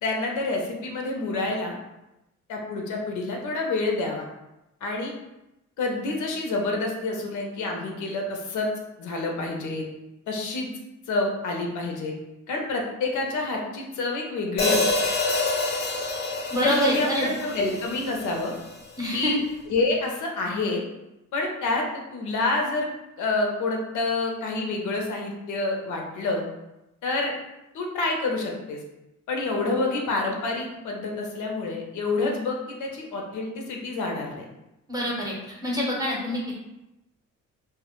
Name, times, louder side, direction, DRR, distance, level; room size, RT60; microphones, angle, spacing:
voice 1, 0.0-1.8 2.5-4.3 4.8-5.1 5.8-8.7 9.0-9.8 10.3-10.7 11.1-12.1 12.5-14.8 16.6-18.5 19.1-19.4 19.7-20.8 21.3-21.8 22.1-22.9 23.2-26.4 27.0-27.3 27.7-28.8 29.3-34.4, left 3 dB, 75° left, 1 dB, 0.6 m, -28 dB
Hi-hat, 14.6-18.8, left 3 dB, 35° left, 0.6 m, -27 dB
voice 2, 16.5-17.3 19.0-19.3 34.9-35.3 35.6-36.6, equal, 10° right, -4 dB, 0.7 m, -26 dB
2.1 x 2.1 x 2.9 m, 0.93 s
cardioid pair, 90°, 30 cm